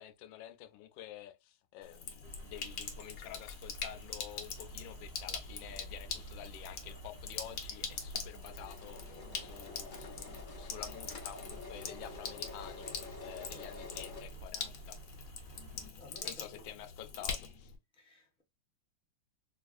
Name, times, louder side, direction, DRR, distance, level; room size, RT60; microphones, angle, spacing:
voice 1, 0.0-15.0 16.2-17.7, left 11 dB, 85° left, 1.4 m, -49 dB
Sink (filling or washing), 1.8-17.8, left 5 dB, 70° left, 1.5 m, -44 dB
sound 1, 2.2-15.9, right 2 dB, 50° right, 0.8 m, -52 dB
sound 2, 5.5-5.7 6.0-6.1 6.4-14.2, left 3 dB, 35° left, 0.9 m, -50 dB
voice 2, 15.9-16.6 17.9-18.4, left 1 dB, 5° left, 1.0 m, -56 dB
5.0 x 2.4 x 2.4 m
omnidirectional pair, 2.1 m